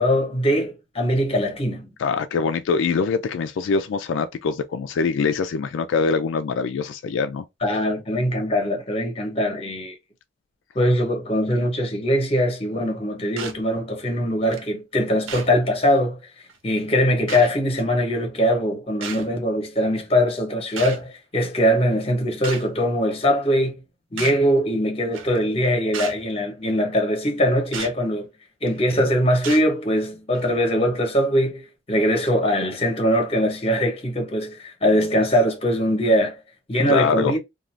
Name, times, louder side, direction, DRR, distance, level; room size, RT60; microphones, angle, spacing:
voice 1, 0.0-1.9 7.6-9.9 10.7-16.2 16.6-23.8 24.1-28.3 28.6-36.4 36.7-37.4, equal, 30° left, 0.9 m, -22 dB
voice 2, 2.0-7.5 36.8-37.3, left 5 dB, 75° left, 0.3 m, -23 dB
sound 1, 13.4-13.6 14.5-14.6 15.3-15.5 16.5-16.6 17.3-17.5 19.0-19.3 20.8-21.0 22.4-22.7 24.2-24.4 25.1-25.4 25.9-26.2 27.7-27.9 28.7-28.9 29.4-29.7 30.3-30.5, right 6 dB, 80° right, 0.7 m, -33 dB
2.5 x 2.4 x 3.1 m
head